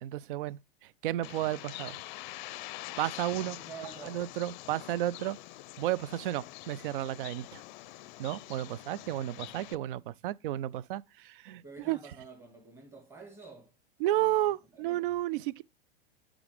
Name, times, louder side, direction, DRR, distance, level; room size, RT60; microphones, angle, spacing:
voice 1, 0.0-2.0 3.0-3.6 4.0-5.4 5.8-7.6 8.2-12.0 14.0-15.6, right 14 dB, 60° right, 0.4 m, -32 dB
Bird, 1.2-9.7, left 17 dB, 50° left, 0.5 m, -45 dB
voice 2, 3.3-4.2 11.6-13.7 14.1-14.4 14.7-15.0, right 4 dB, 10° right, 2.0 m, -49 dB
9.5 x 3.7 x 3.3 m
hypercardioid pair, 100°, 30 cm